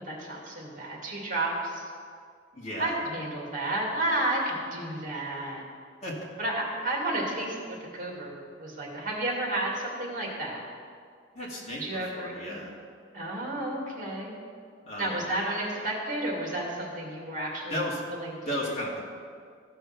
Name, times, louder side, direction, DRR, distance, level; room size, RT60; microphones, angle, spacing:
voice 1, 0.0-1.9 2.8-5.6 6.4-10.6 11.8-12.6 13.1-14.4 15.0-17.8 18.2-18.7, right 1 dB, 45° right, -2 dB, 2.4 m, -32 dB
voice 2, 2.5-2.9 6.0-6.2 11.3-12.8 14.9-15.3 17.7-18.0 18.5-19.0, equal, 35° left, -4 dB, 2.3 m, -34 dB
15.0 x 5.6 x 5.9 m, 2.2 s
head